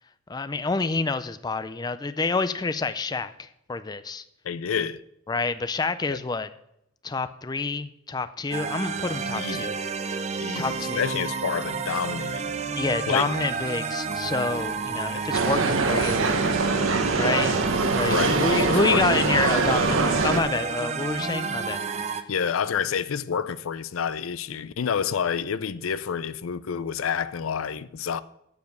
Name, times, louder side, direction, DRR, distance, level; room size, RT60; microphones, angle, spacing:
voice 1, 0.3-4.2 5.3-6.5 7.0-9.7 10.1-11.0 12.8-16.2 17.1-17.6 17.9-21.8, left 3 dB, 20° left, 0.4 m, -28 dB
voice 2, 4.4-5.0 6.1-6.2 9.3-9.7 10.4-12.5 13.1-13.2 15.1-15.3 18.1-19.0 22.3-28.2, left 7 dB, 85° left, 0.5 m, -29 dB
sound 1, 8.5-22.2, right 5 dB, 35° right, 0.5 m, -30 dB
sound 2, 15.3-20.4, right 3 dB, 75° right, 0.9 m, -23 dB
7.3 x 7.0 x 7.9 m
head